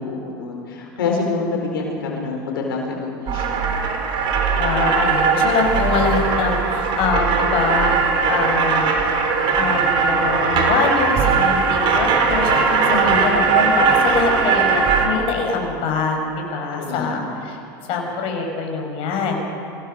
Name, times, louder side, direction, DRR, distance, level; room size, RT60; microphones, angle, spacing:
voice 1, 0.0-3.8 12.8-13.4 16.7-17.2, left 3 dB, 85° left, 0 dB, 4.5 m, -26 dB
sound 1, 3.3-15.1, right 5 dB, 45° right, 3.9 m, -19 dB
voice 2, 4.6-8.8 9.5-17.6 17.9-19.4, left 4 dB, 50° left, 2 dB, 5.1 m, -23 dB
25.5 x 16.5 x 6.6 m, 2.8 s
hypercardioid pair, 100°, 12 cm